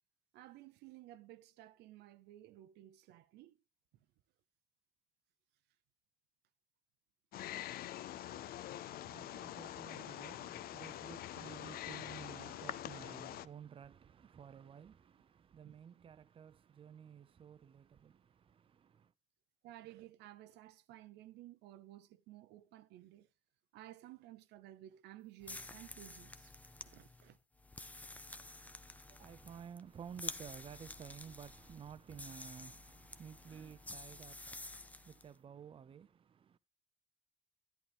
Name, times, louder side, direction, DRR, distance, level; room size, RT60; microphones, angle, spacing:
voice 1, 0.3-3.6 15.6-15.7 19.6-23.3 23.7-27.4 29.1-29.3, right 14 dB, 85° right, 0.7 m, -55 dB
Wild animals, 7.3-13.5, left 13 dB, 60° left, 0.5 m, -45 dB
voice 2, 8.3-19.1 28.2-36.6, right 7 dB, 30° right, 0.6 m, -54 dB
sound 1, 25.4-35.3, left 2 dB, 10° left, 0.6 m, -50 dB
11.0 x 10.0 x 3.5 m
cardioid pair, 110°, 17 cm